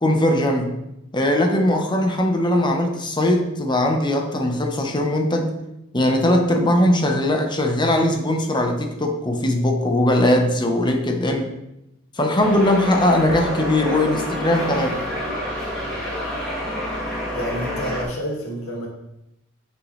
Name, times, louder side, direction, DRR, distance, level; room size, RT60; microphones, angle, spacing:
voice 1, 0.0-0.8 1.1-5.5 5.9-11.5 12.2-15.0, left 1 dB, 20° left, 3 dB, 0.9 m, -20 dB
sound 1, 12.4-18.0, equal, 5° left, 2.7 m, -28 dB
voice 2, 17.3-18.9, equal, 80° left, -1 dB, 2.0 m, -29 dB
8.3 x 6.3 x 3.2 m, 0.89 s
head